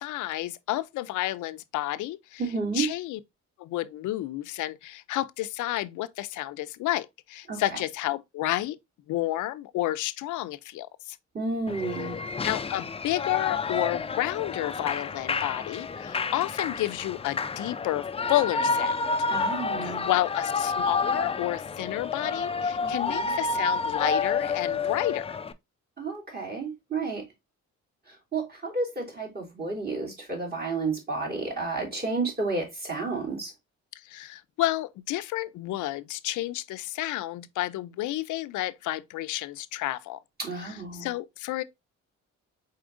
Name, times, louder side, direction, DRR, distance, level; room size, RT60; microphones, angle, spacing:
voice 1, 0.0-2.4 2.7-3.2 3.6-8.8 9.1-11.2 12.4-19.0 19.8-25.4 33.9-40.2 40.6-41.6, left 15 dB, 80° left, 0.5 m, -31 dB
voice 2, 2.4-2.9 7.5-7.8 11.3-12.2 19.3-20.1 22.8-23.3 26.0-27.2 28.1-33.5 40.4-41.1, right 3 dB, 30° right, 2.9 m, -31 dB
Shout / Cheering, 11.7-25.5, left 4 dB, 20° left, 0.4 m, -30 dB
4.8 x 4.3 x 2.4 m
cardioid pair, 90°, 30 cm